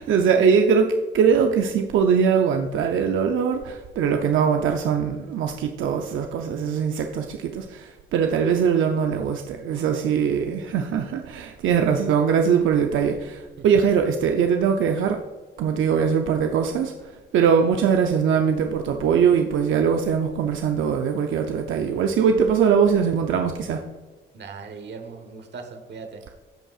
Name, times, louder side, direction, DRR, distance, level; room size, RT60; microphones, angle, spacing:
voice 1, 0.0-15.2 15.6-23.8, right 7 dB, 80° right, 4 dB, 0.6 m, -21 dB
voice 2, 24.3-26.2, right 4 dB, 60° right, 5 dB, 1.1 m, -39 dB
14.5 x 5.3 x 2.4 m, 1.3 s
supercardioid pair, 60°, 20 cm